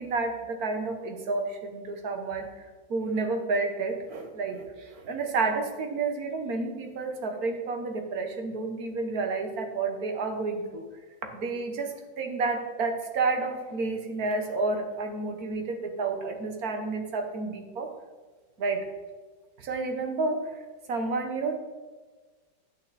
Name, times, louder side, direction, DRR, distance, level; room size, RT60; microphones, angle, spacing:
voice 1, 0.0-2.6 2.9-10.9 11.3-17.9 18.6-18.9 19.6-21.6, right 3 dB, 55° right, 5 dB, 1.6 m, -30 dB
10.0 x 8.8 x 4.1 m, 1.4 s
omnidirectional pair, 1.9 m